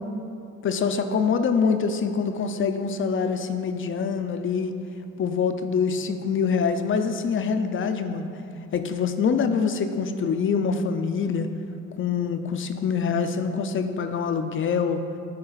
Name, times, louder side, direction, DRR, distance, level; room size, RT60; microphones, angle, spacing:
voice 1, 0.6-4.7 5.2-8.3 8.7-11.5 12.0-15.0, left 5 dB, 45° left, 8 dB, 0.5 m, -25 dB
9.8 x 3.5 x 3.9 m, 2.6 s
cardioid pair, 90°, 30 cm